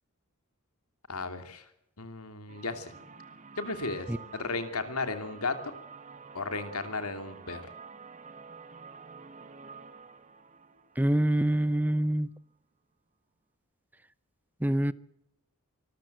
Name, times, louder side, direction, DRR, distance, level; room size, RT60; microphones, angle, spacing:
voice 1, 1.1-1.7 2.0-2.9 3.6-5.7 6.3-7.7, left 3 dB, 85° left, 2.9 m, -35 dB
sound 1, 2.5-12.2, right 5 dB, 35° right, 1.8 m, -49 dB
voice 2, 11.0-12.3 14.6-14.9, right 1 dB, 10° right, 0.7 m, -25 dB
25.0 x 14.0 x 8.1 m
head